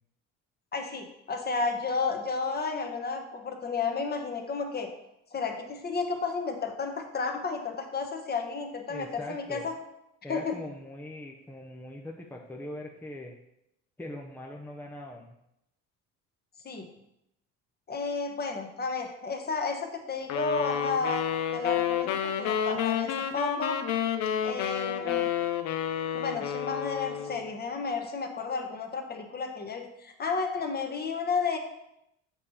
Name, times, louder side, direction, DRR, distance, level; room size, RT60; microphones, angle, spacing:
voice 1, 0.7-4.9 5.3-9.7 10.3-10.6 16.6-16.9 17.9-21.2 21.5-23.8 24.4-25.3 26.1-31.6, left 4 dB, 30° left, 3 dB, 1.2 m, -32 dB
voice 2, 8.9-9.7 10.2-13.3 14.0-15.4, left 1 dB, 5° left, 0 dB, 0.7 m, -41 dB
sound 1, 20.3-27.5, left 9 dB, 65° left, 0.8 m, -30 dB
7.4 x 5.3 x 4.3 m, 0.83 s
cardioid pair, 110°, 31 cm